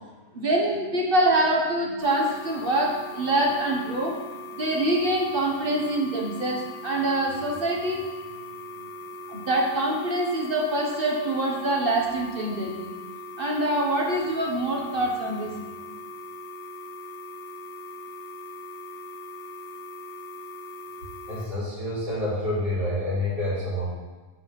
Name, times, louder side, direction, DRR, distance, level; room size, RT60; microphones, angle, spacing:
voice 1, 0.3-4.2 4.5-8.0 9.3-12.9 13.4-15.5, right 1 dB, 40° right, 0 dB, 1.2 m, -25 dB
sound 1, 2.0-21.4, left 2 dB, 65° left, 1.6 m, -40 dB
voice 2, 21.3-23.9, left 1 dB, 90° right, -9 dB, 3.7 m, -28 dB
7.1 x 4.9 x 5.8 m, 1.2 s
omnidirectional pair, 1.7 m